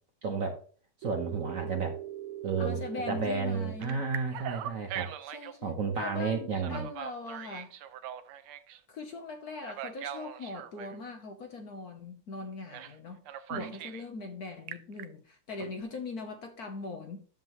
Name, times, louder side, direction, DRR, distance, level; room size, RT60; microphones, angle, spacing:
voice 1, 0.2-0.6 1.0-2.0 2.4-2.8 3.1-5.1 5.6-6.9 13.5-13.7, right 5 dB, 50° right, 1.1 m, -32 dB
Telephone, 1.0-3.3 3.8-5.6 6.5-8.8 9.6-11.0 12.7-13.0 13.3-14.1 14.5-15.0, right 11 dB, 90° right, 1.7 m, -41 dB
voice 2, 2.6-4.0 5.3-7.7 8.9-13.2 13.5-17.2, left 3 dB, 55° left, 1.2 m, -41 dB
11.0 x 7.5 x 3.1 m
omnidirectional pair, 2.3 m